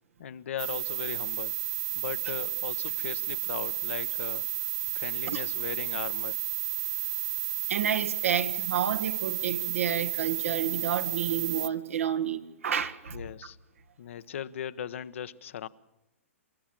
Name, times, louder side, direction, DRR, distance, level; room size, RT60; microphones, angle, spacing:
voice 1, 0.2-1.6 1.9-4.5 4.9-6.4 13.1-13.6 14.0-15.7, left 9 dB, 65° left, 0.9 m, -38 dB
sound 1, 0.6-11.7, right 13 dB, 40° right, 1.1 m, -32 dB
voice 2, 7.7-13.2, right 9 dB, 70° right, 1.6 m, -30 dB
27.0 x 14.0 x 7.5 m
hypercardioid pair, 115°, 8 cm